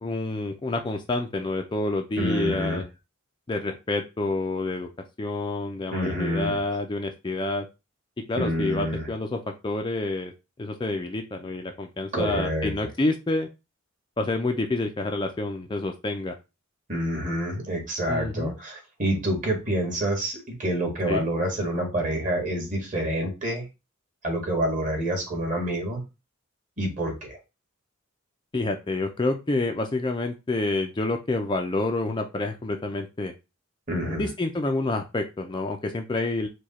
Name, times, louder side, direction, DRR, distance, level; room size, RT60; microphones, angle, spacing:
voice 1, 0.0-2.8 3.5-4.9 5.2-7.7 8.3-10.3 10.6-13.5 14.2-16.4 18.1-18.5 21.1-21.3 28.5-33.3 34.2-36.5, left 2 dB, 20° left, 4 dB, 0.4 m, -28 dB
voice 2, 2.2-2.8 5.9-6.6 8.4-9.1 12.1-12.7 16.9-23.7 24.2-26.0 26.8-27.4 33.9-34.3, right 1 dB, 35° right, 0 dB, 1.8 m, -27 dB
4.8 x 2.3 x 4.1 m, 0.26 s
head